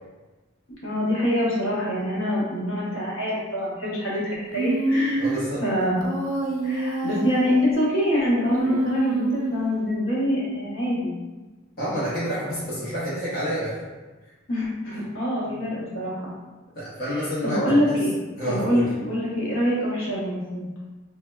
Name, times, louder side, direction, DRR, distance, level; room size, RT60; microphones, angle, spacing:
voice 1, 0.8-5.3 5.6-6.0 6.6-11.1 14.5-16.3 17.1-18.1 18.4-20.7, equal, 70° left, -7 dB, 0.9 m, -25 dB
Human voice, 4.5-5.5 6.0-7.6 8.4-9.7, right 2 dB, 70° right, 0.3 m, -26 dB
voice 2, 5.2-5.6 11.8-13.8 16.8-18.0 18.4-18.9, equal, 45° left, -10 dB, 0.7 m, -28 dB
3.3 x 2.1 x 2.2 m, 1.2 s
head